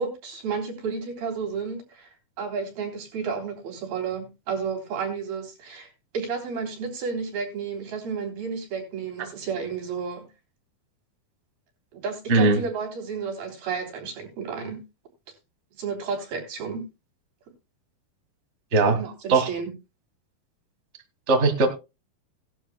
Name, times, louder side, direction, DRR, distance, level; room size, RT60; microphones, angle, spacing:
voice 1, 0.0-5.9 6.1-10.2 11.9-14.8 15.8-16.9 19.0-19.7, right 5 dB, 85° right, 2 dB, 5.2 m, -32 dB
voice 2, 21.3-21.7, right 3 dB, 35° right, 6 dB, 1.2 m, -19 dB
17.5 x 11.5 x 2.3 m, 0.25 s
omnidirectional pair, 4.2 m